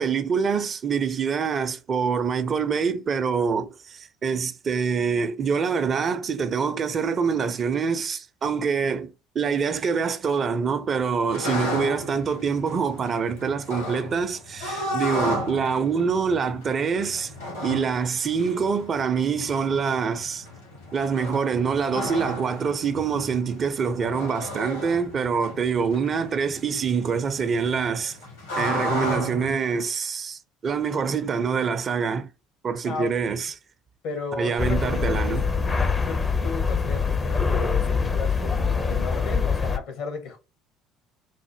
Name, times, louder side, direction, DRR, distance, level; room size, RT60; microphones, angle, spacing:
voice 1, 0.0-17.3 17.6-20.5 20.9-28.2 28.6-32.3 32.6-33.5 34.4-35.4, right 6 dB, 40° right, 0.5 m, -25 dB
sound 1, 11.3-29.5, left 1 dB, 80° left, 1.9 m, -34 dB
voice 2, 34.0-40.4, left 4 dB, 60° left, 1.0 m, -35 dB
sound 2, 34.6-39.8, left 5 dB, 25° left, 0.5 m, -24 dB
4.1 x 2.0 x 3.0 m
hypercardioid pair, 60°, 0 cm